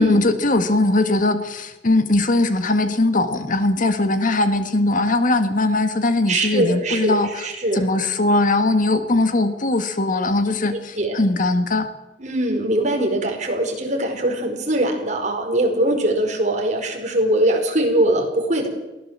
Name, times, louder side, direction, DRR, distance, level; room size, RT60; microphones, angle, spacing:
voice 1, 0.0-7.5 7.7-11.9, left 2 dB, 50° left, 9 dB, 1.8 m, -20 dB
voice 2, 6.3-7.8 11.0-11.2 12.2-18.7, right 1 dB, 45° right, 3 dB, 4.9 m, -21 dB
23.0 x 17.0 x 7.5 m, 1.0 s
head